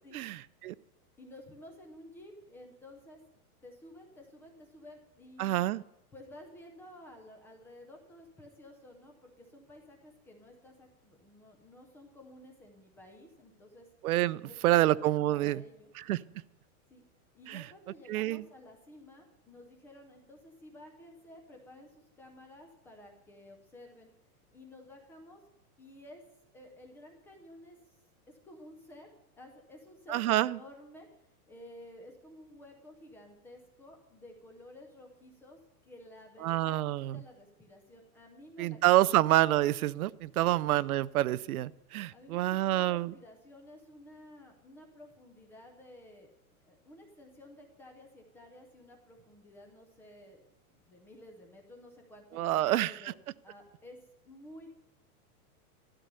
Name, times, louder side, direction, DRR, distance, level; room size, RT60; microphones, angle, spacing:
voice 1, 0.1-0.7 5.4-5.8 14.0-15.6 15.9-16.2 17.5-17.6 18.1-18.4 30.1-30.6 36.4-37.2 38.6-43.1 52.3-53.1, right 15 dB, 75° right, 19 dB, 0.6 m, -27 dB
voice 2, 1.2-5.7 6.1-13.9 14.4-14.9 15.2-15.9 16.9-17.1 17.3-24.1 24.5-25.4 25.8-26.2 26.5-28.0 28.3-29.1 29.4-36.8 37.1-38.8 39.1-39.2 40.4-40.5 42.1-53.2 53.4-54.7, left 1 dB, 5° left, 2 dB, 0.4 m, -53 dB
12.5 x 12.5 x 6.7 m, 0.86 s
supercardioid pair, 165°, 44 cm